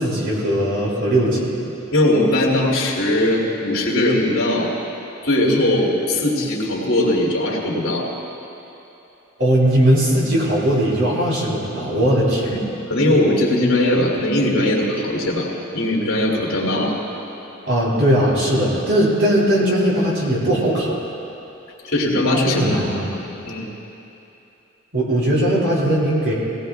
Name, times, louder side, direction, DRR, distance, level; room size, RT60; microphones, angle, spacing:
voice 1, 0.0-1.5 9.4-12.6 17.6-20.9 22.4-23.1 24.9-26.3, right 1 dB, 65° right, -5 dB, 3.4 m, -19 dB
voice 2, 1.9-4.7 5.2-8.0 12.5-12.6 12.9-16.9 21.8-22.7 23.4-23.7, left 1 dB, 70° left, -3 dB, 2.6 m, -19 dB
18.0 x 18.0 x 2.3 m, 2.9 s
head